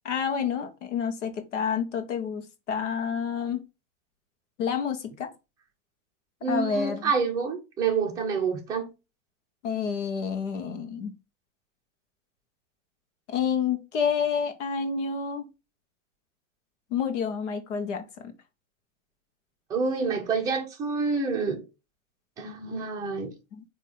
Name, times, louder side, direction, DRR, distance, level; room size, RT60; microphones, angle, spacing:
voice 1, 0.0-3.6 4.6-5.3 6.5-7.1 9.6-11.1 13.3-15.5 16.9-18.3 23.5-23.6, left 6 dB, 60° left, 1.5 m, -29 dB
voice 2, 6.4-8.9 19.7-21.6 22.4-23.3, right 5 dB, 10° right, 0.8 m, -28 dB
8.9 x 3.1 x 3.9 m
supercardioid pair, 175°, 40 cm